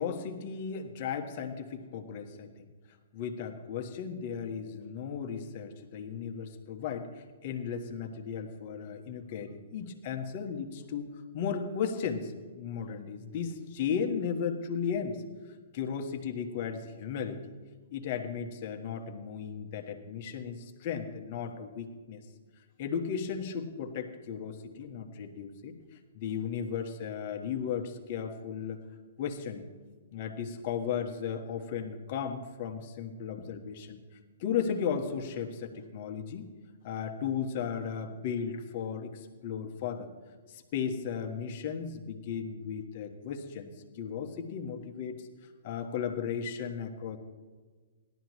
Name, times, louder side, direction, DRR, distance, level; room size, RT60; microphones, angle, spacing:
voice 1, 0.0-2.7 3.1-11.1 11.3-15.2 15.7-17.4 17.9-22.2 22.8-25.8 26.1-28.8 29.2-29.7 30.1-34.0 34.4-36.5 36.8-40.1 40.5-45.3 45.6-47.2, left 7 dB, 45° left, 3 dB, 1.4 m, -35 dB
17.5 x 12.0 x 3.1 m, 1.4 s
hypercardioid pair, 125°, 0 cm